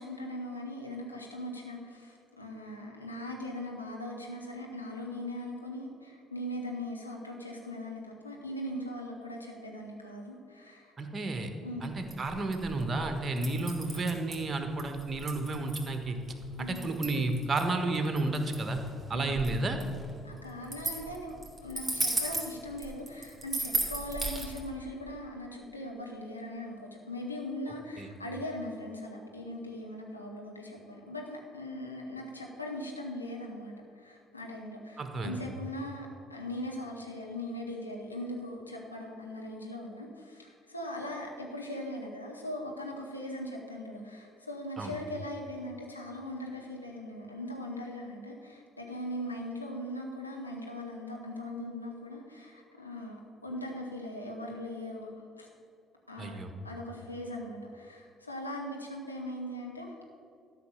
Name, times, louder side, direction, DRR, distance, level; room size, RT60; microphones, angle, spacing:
voice 1, 0.0-10.9 11.6-11.9 16.6-16.8 19.1-19.3 20.2-55.5 56.1-59.9, left 1 dB, 85° left, -1 dB, 1.2 m, -40 dB
voice 2, 11.0-11.5 11.8-16.2 16.6-18.8 19.1-19.8 28.0-28.1 35.0-35.4 44.8-44.9 56.2-56.5, right 2 dB, 30° right, 6 dB, 1.3 m, -31 dB
sound 1, 12.0-24.6, right 2 dB, 10° right, 2.7 m, -36 dB
12.5 x 5.8 x 6.8 m, 2.4 s
figure-of-eight pair, 50°, 0 cm